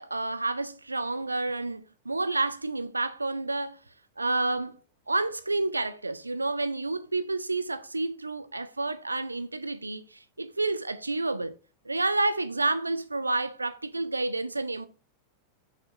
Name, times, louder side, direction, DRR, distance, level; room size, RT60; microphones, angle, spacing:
voice 1, 0.0-3.8 4.2-4.7 5.1-11.6 11.9-14.9, right 2 dB, 80° right, 0.4 m, -29 dB
5.8 x 4.2 x 3.9 m
figure-of-eight pair, 90°, 0 cm